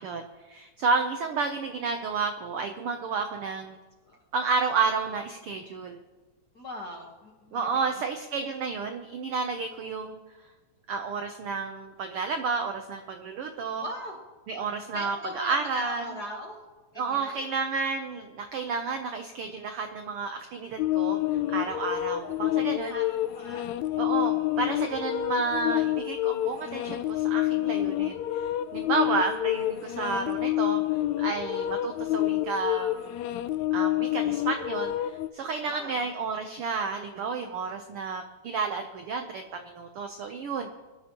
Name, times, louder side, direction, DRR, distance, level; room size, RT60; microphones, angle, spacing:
voice 1, 0.0-3.8 4.3-6.0 7.5-10.2 10.9-13.8 14.5-16.0 17.0-21.2 21.5-22.9 24.0-33.2 33.7-40.7, right 4 dB, 85° right, 6 dB, 1.2 m, -31 dB
voice 2, 6.5-7.9 13.8-14.2 14.9-16.6 16.9-17.5 22.6-23.7 35.7-36.1, equal, 50° left, 0 dB, 1.2 m, -40 dB
sound 1, 20.8-35.3, left 14 dB, 80° left, 1.7 m, -28 dB
22.5 x 11.0 x 3.0 m, 1.2 s
omnidirectional pair, 3.6 m